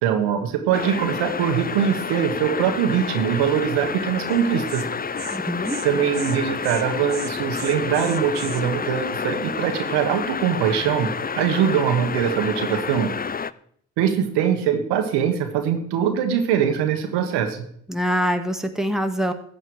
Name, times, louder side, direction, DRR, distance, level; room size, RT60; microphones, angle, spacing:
voice 1, 0.0-4.9 5.8-13.1 14.0-17.7, right 8 dB, 85° right, 6 dB, 1.4 m, -22 dB
sound 1, 0.7-13.5, left 5 dB, 25° left, 0.6 m, -29 dB
Insect, 4.3-4.4 4.7-4.8 5.2-5.4 5.6-5.9 6.1-6.4 6.6-6.8 7.1-8.6, right 8 dB, 55° right, 1.3 m, -37 dB
voice 2, 5.3-5.8 17.9-19.3, equal, ahead, 6 dB, 1.8 m, -24 dB
14.0 x 8.9 x 4.8 m, 0.64 s
hypercardioid pair, 40°, 40 cm